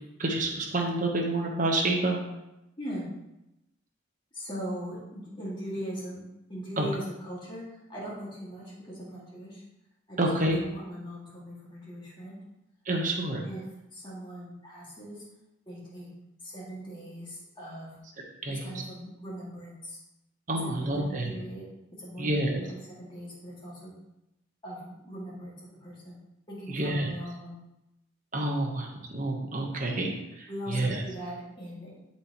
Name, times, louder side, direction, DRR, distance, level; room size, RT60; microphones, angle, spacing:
voice 1, 0.2-2.2 6.8-6.9 10.2-10.6 12.8-13.4 18.4-18.7 20.5-21.3 22.2-22.6 26.7-27.1 28.3-31.0, right 1 dB, 40° right, 0 dB, 1.1 m, -28 dB
voice 2, 4.3-6.2 6.5-9.6 10.1-10.3 10.6-12.4 13.4-13.6 13.9-15.2 15.7-16.1 16.4-17.9 18.5-20.0 20.7-21.6 22.0-23.9 24.6-26.2 26.5-27.6 30.5-32.0, equal, 25° left, -6 dB, 2.1 m, -40 dB
11.0 x 4.3 x 3.0 m, 0.92 s
head